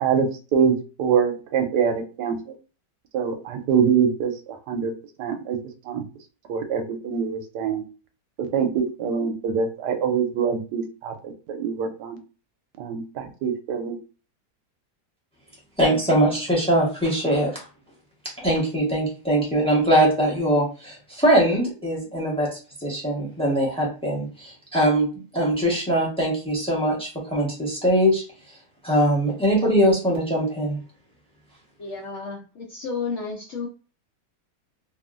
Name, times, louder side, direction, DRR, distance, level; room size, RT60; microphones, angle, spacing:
voice 1, 0.0-2.4 3.1-4.3 4.7-4.9 5.2-5.6 5.9-6.0 6.5-7.8 8.5-11.1 11.5-12.2 12.8-14.0, right 7 dB, 85° right, 6 dB, 1.2 m, -24 dB
voice 2, 15.8-17.7 18.4-22.5 22.8-28.2 28.8-30.8, right 1 dB, 5° left, -3 dB, 0.7 m, -22 dB
voice 3, 31.8-33.7, left 4 dB, 65° left, -2 dB, 0.7 m, -32 dB
2.9 x 2.4 x 2.4 m, 0.35 s
omnidirectional pair, 1.8 m